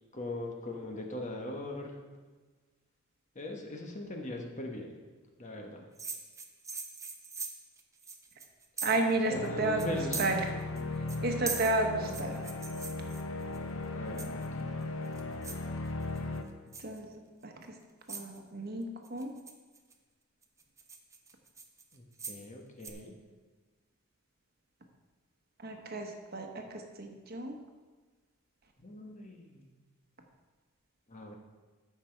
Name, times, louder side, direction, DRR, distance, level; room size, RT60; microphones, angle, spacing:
voice 1, 0.1-2.0 3.3-4.9 5.4-5.9 9.3-10.4 13.9-14.7 21.9-23.1 28.8-29.7 31.1-31.4, left 2 dB, 35° left, 2 dB, 1.3 m, -40 dB
sound 1, 6.0-9.2 9.4-9.5 9.8-10.8 11.1-13.6 14.2-14.6 15.0-15.7 16.0-16.4 16.7-17.0 17.6-17.7 18.1-18.4 19.0-19.9 20.4-22.5 22.8-22.9, right 4 dB, 15° right, 0.8 m, -41 dB
voice 2, 8.8-10.4 11.2-12.4 16.8-17.5 18.1-19.3 25.6-27.5, right 2 dB, 50° right, 3 dB, 1.2 m, -32 dB
sound 2, 9.3-16.4, left 2 dB, 70° left, 0.8 m, -37 dB
14.0 x 5.8 x 4.6 m, 1.3 s
head